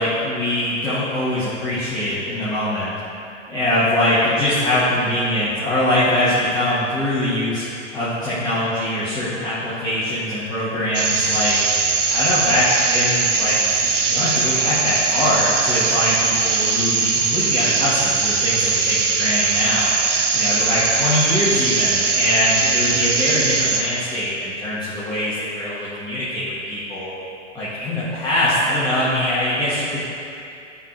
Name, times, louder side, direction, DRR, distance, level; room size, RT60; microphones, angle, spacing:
voice 1, 0.0-2.9 3.5-7.6 7.9-11.6 12.1-19.9 20.3-27.1 27.5-30.0, left 1 dB, 10° left, -13 dB, 1.4 m, -22 dB
sound 1, 10.9-23.8, right 5 dB, 75° right, 0.8 m, -20 dB
13.0 x 4.8 x 2.5 m, 2.6 s
figure-of-eight pair, 105°, 37 cm